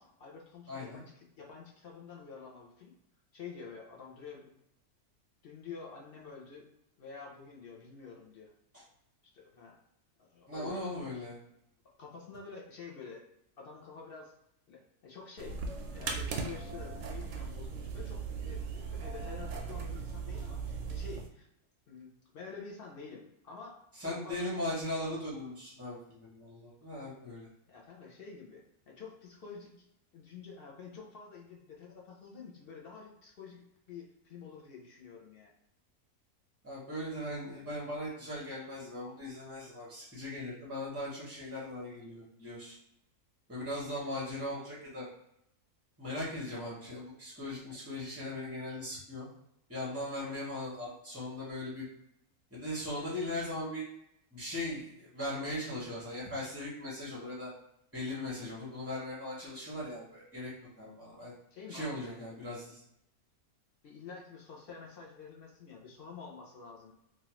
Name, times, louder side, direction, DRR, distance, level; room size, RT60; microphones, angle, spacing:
voice 1, 0.0-2.9 3.3-4.6 5.4-6.7 7.0-8.5 9.2-9.8 10.2-10.8 12.0-13.2 13.6-14.3 14.7-15.6 15.9-21.5 21.9-24.5 27.2-27.3 27.7-29.7 30.1-35.5 61.5-62.3 63.8-66.9, left 5 dB, 55° left, -2 dB, 0.6 m, -48 dB
voice 2, 0.7-1.0 8.7-8.8 10.5-11.4 23.9-27.5 36.6-42.8 43.5-45.1 46.0-49.3 49.7-51.9 52.5-53.8 54.3-57.5 57.9-60.5 60.8-61.3 61.7-62.8, left 1 dB, 15° right, -6 dB, 0.4 m, -39 dB
sound 1, 15.4-21.3, right 5 dB, 65° right, 0.7 m, -38 dB
3.1 x 2.4 x 2.9 m, 0.78 s
omnidirectional pair, 1.5 m